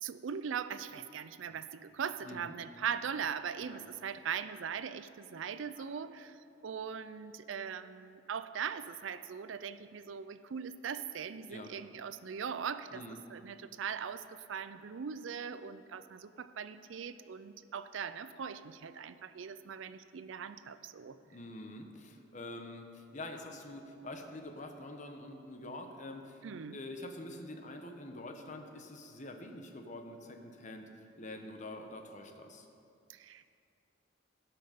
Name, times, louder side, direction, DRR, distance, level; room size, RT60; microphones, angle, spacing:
voice 1, 0.0-13.0 13.3-21.2 26.4-26.8 33.1-33.5, right 7 dB, 75° right, 13 dB, 0.4 m, -40 dB
voice 2, 2.2-2.5 3.7-3.9 5.8-5.9 11.5-11.7 12.9-13.2 21.3-26.4 26.7-32.7, left 1 dB, 40° left, 4 dB, 1.0 m, -46 dB
17.5 x 5.9 x 5.1 m, 2.6 s
head